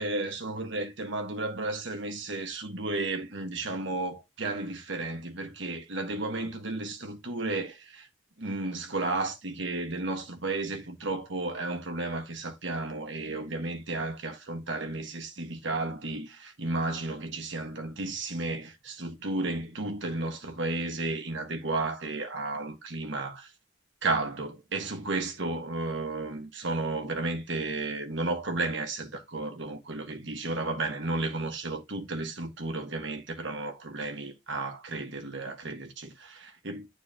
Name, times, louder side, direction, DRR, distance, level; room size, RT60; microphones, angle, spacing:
voice 1, 0.0-8.1 8.4-23.5 24.0-36.9, right 2 dB, 60° right, 1.6 m, -33 dB
9.5 x 4.2 x 2.8 m
head